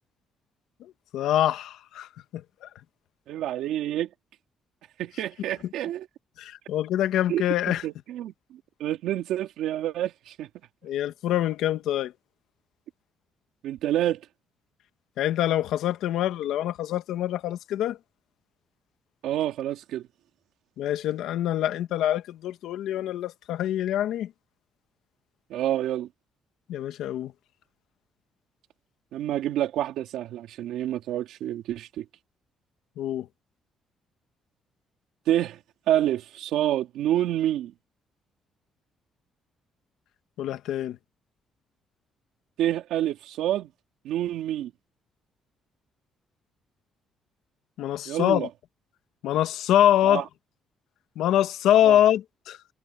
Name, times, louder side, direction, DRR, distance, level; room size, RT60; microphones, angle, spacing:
voice 1, 0.8-2.7 6.4-7.8 10.8-12.1 15.2-18.0 20.8-24.3 26.7-27.3 33.0-33.3 40.4-41.0 47.8-48.5 49.2-50.2 51.1-52.6, left 12 dB, 80° left, 1.4 m, -25 dB
voice 2, 3.3-4.1 5.0-6.1 7.3-8.3 8.8-10.5 13.6-14.2 19.2-20.0 25.5-26.1 29.1-32.0 35.3-35.6 35.9-37.7 42.6-43.7 44.0-44.7 48.1-48.5 50.0-50.2 51.8-52.0, right 12 dB, 85° right, 2.7 m, -28 dB
cardioid pair, 175°, 0 cm